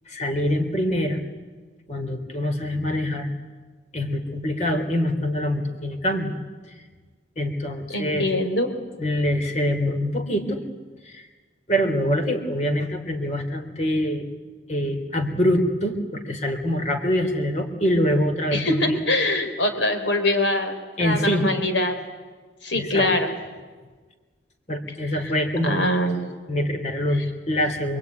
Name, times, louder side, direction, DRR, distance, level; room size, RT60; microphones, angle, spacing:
voice 1, 0.1-1.2 1.9-3.3 3.9-6.3 7.4-8.3 9.0-10.6 11.1-11.3 11.7-14.3 14.7-19.0 21.0-21.5 22.7-23.1 24.7-25.8 26.5-28.0, equal, 40° left, 5 dB, 3.5 m, -24 dB
voice 2, 7.9-8.7 18.5-20.7 21.0-21.9 22.6-23.3 25.1-25.3 25.6-26.3 27.2-27.3, left 1 dB, 85° left, 7 dB, 4.0 m, -23 dB
27.0 x 23.0 x 9.6 m, 1.4 s
head